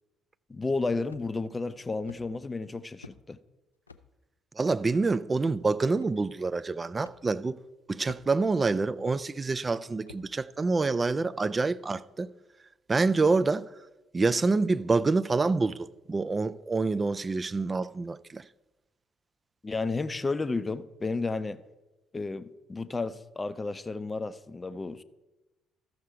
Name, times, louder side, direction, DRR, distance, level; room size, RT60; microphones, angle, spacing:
voice 1, 0.5-3.4 19.6-21.6 22.1-25.0, left 3 dB, 20° left, 0.5 m, -32 dB
sound 1, 1.1-1.5 2.1-2.3 3.0-3.2 3.9-4.1 4.9-5.1 6.0-6.1 7.0-7.2 8.1-8.5 9.1-9.2 10.1-10.3, left 4 dB, 85° left, 0.3 m, -49 dB
voice 2, 4.6-7.6 7.9-12.3 12.9-13.7 14.1-18.4, right 3 dB, 25° right, 0.4 m, -27 dB
13.0 x 6.5 x 4.7 m
figure-of-eight pair, 45°, 0 cm